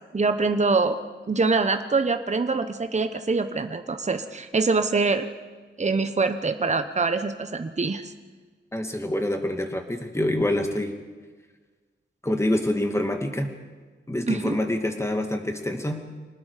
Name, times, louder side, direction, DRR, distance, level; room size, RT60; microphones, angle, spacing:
voice 1, 0.1-1.0 1.3-5.3 5.8-8.1 14.3-14.6, right 4 dB, 35° right, 8 dB, 1.0 m, -24 dB
voice 2, 8.7-11.0 12.2-13.5 14.1-16.0, left 1 dB, 15° left, 4 dB, 2.4 m, -26 dB
26.0 x 19.5 x 5.1 m, 1.4 s
wide cardioid pair, 100°, 19 cm